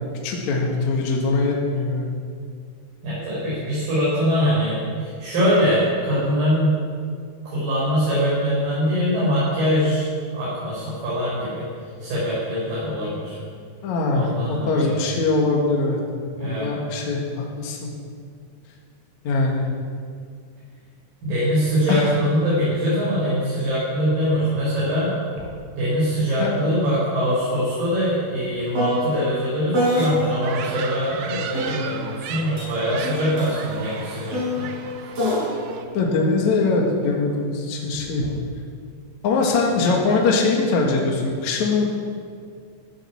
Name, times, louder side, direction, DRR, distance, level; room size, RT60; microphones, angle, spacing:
voice 1, 0.2-2.1 13.8-16.0 16.4-17.2 17.6-17.9 19.2-19.7 21.9-22.1 26.4-26.5 35.9-38.2 39.2-41.9, left 3 dB, 55° left, -1 dB, 2.9 m, -22 dB
voice 2, 3.0-6.7 7.4-11.6 12.0-13.4 14.1-15.0 16.4-16.7 21.2-25.1 25.8-34.7, equal, 70° right, -9 dB, 6.8 m, -23 dB
sound 1, 25.4-25.5 25.9-30.6 31.5-37.1 37.9-38.4, equal, 40° right, 5.7 m, -28 dB
sound 2, 30.4-35.9, right 7 dB, 85° right, 1.4 m, -36 dB
15.0 x 12.0 x 7.2 m, 2.2 s
omnidirectional pair, 4.2 m